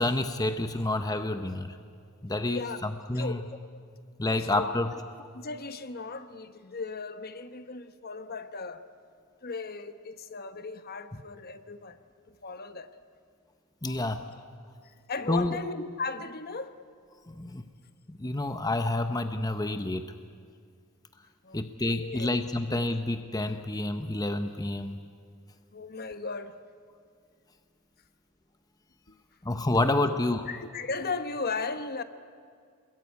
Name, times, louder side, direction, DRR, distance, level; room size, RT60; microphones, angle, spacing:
voice 1, 0.0-1.8 2.2-3.4 4.2-4.9 13.8-14.2 15.3-15.6 17.3-17.6 18.1-20.1 21.5-25.0 29.4-30.4, left 2 dB, 15° left, 0.8 m, -29 dB
voice 2, 3.1-3.5 4.3-4.7 5.3-8.8 9.4-12.0 12.3-12.9 13.8-14.2 15.1-16.8 21.4-21.6 21.9-22.3 25.7-26.5 29.1-29.2 30.0-30.1 30.5-32.0, left 4 dB, 45° left, 1.1 m, -36 dB
27.5 x 22.0 x 9.6 m
head